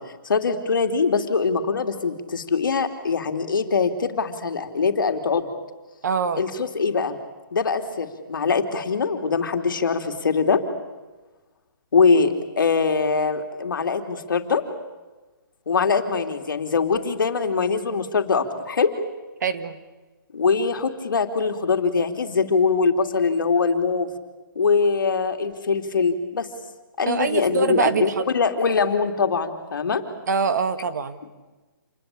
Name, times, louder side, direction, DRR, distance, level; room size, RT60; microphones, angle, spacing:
voice 1, 0.2-5.5 6.4-7.2 7.5-10.6 11.9-14.6 15.7-18.9 20.3-24.1 24.5-26.5 27.0-30.0, left 5 dB, 70° left, 6 dB, 3.1 m, -22 dB
voice 2, 6.0-6.4 19.4-19.8 27.1-28.2 30.3-31.2, right 5 dB, 55° right, 10 dB, 1.9 m, -24 dB
28.0 x 20.5 x 8.6 m, 1.2 s
hypercardioid pair, 165°, 11 cm